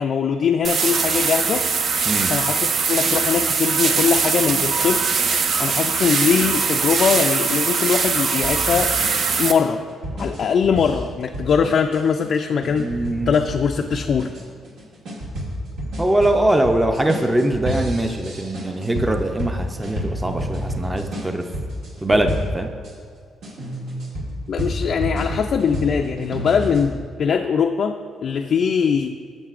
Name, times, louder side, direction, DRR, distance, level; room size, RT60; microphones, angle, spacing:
voice 1, 0.0-1.7 2.3-5.1 5.6-8.9 9.4-9.8 10.2-14.3 24.5-29.2, left 6 dB, 60° left, 4 dB, 0.3 m, -21 dB
sound 1, 0.6-9.5, right 5 dB, 60° right, 0.6 m, -21 dB
sound 2, 8.4-22.9 23.4-26.9, equal, 80° right, 2.1 m, -30 dB
voice 2, 12.8-13.4 16.0-21.4 22.0-22.7, right 1 dB, 15° right, 5 dB, 0.5 m, -22 dB
11.5 x 7.2 x 2.4 m, 2.1 s
cardioid pair, 90°, 0 cm